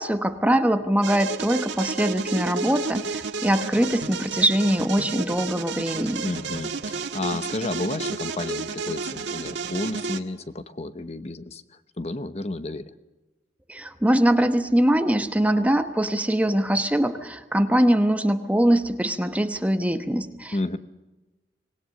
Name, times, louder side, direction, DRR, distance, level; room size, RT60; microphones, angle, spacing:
voice 1, 0.0-6.2 13.7-20.8, right 1 dB, 10° right, 8 dB, 1.0 m, -22 dB
sound 1, 1.0-10.2, right 4 dB, 90° right, 1.6 m, -32 dB
voice 2, 6.2-12.8 20.5-20.8, left 2 dB, 35° left, 11 dB, 0.9 m, -31 dB
25.5 x 19.5 x 6.6 m, 1.1 s
head